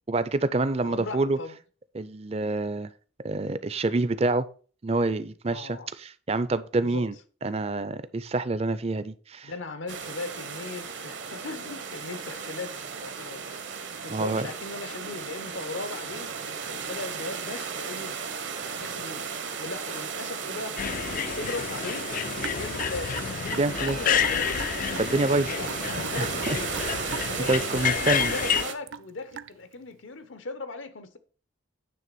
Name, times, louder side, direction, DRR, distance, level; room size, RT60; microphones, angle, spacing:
voice 1, 0.1-1.4 1.9-2.9 3.2-4.5 4.8-7.1 7.4-9.5 14.1-14.4 23.5-24.0 25.0-25.5 26.2-26.6 26.9-27.0 27.4-28.3, right 2 dB, 30° right, 0.5 m, -27 dB
voice 2, 0.8-1.6 5.5-5.9 6.8-7.1 9.4-13.4 14.0-18.2 18.6-19.3 19.6-22.1 22.5-23.2 23.6-24.5 25.5-26.8 27.2-31.2, left 3 dB, 80° left, 1.0 m, -38 dB
sound 1, 9.9-28.7, right 6 dB, 70° right, 1.1 m, -35 dB
sound 2, 20.8-28.6, left 8 dB, 45° left, 0.3 m, -29 dB
Raindrop / Drip, 22.4-29.7, right 7 dB, 90° right, 0.4 m, -40 dB
9.5 x 3.3 x 6.7 m
head